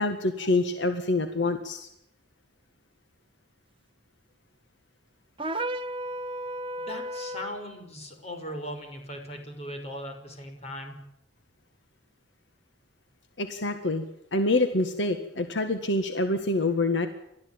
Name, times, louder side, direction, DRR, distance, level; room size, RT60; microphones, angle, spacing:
voice 1, 0.0-1.9 13.4-14.1 14.3-17.1, left 2 dB, 70° left, 8 dB, 1.8 m, -26 dB
sound 1, 5.4-7.6, right 1 dB, 30° right, 1.1 m, -33 dB
voice 2, 6.8-10.9, equal, 35° left, 4 dB, 5.9 m, -39 dB
30.0 x 14.0 x 8.8 m, 0.82 s
head